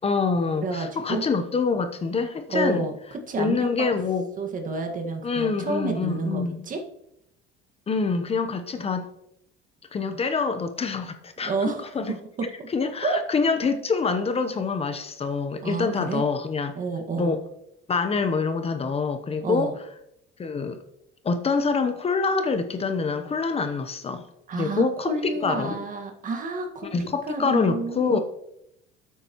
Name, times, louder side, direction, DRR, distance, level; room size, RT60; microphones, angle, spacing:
voice 1, 0.0-2.9 3.4-4.3 5.2-6.7 7.9-9.0 9.9-12.1 12.7-16.7 17.2-17.4 17.9-19.7 20.4-20.8 21.2-24.3 24.5-25.7 26.9-28.2, left 4 dB, 30° left, 8 dB, 0.9 m, -26 dB
voice 2, 0.6-1.2 2.5-3.9 4.4-6.8 11.4-11.9 12.4-12.7 13.0-13.2 15.6-16.2 16.8-17.3 19.4-19.7 24.5-28.2, right 3 dB, 40° right, 4 dB, 1.7 m, -30 dB
12.0 x 8.4 x 3.0 m, 0.78 s
cardioid pair, 115°, 20 cm